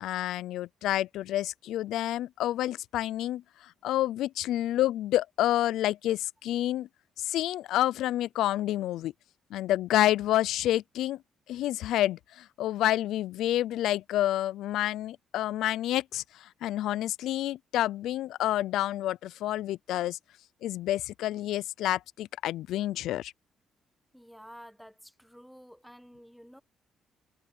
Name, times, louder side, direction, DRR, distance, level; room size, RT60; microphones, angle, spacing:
voice 1, 0.0-3.4 3.8-6.9 7.2-9.1 9.5-11.2 11.5-20.2 20.6-23.3, left 13 dB, 85° left, 0.4 m, -29 dB
voice 2, 24.1-26.6, equal, ahead, 1.0 m, -51 dB
cardioid pair, 90°, 0 cm